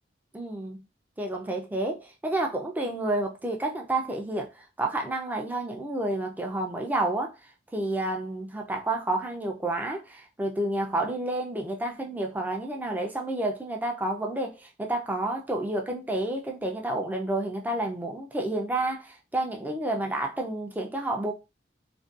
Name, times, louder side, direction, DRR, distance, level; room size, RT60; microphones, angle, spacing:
voice 1, 0.3-0.8 1.2-7.3 7.7-21.3, right 1 dB, 10° right, 0.4 m, -30 dB
2.5 x 2.2 x 2.4 m
head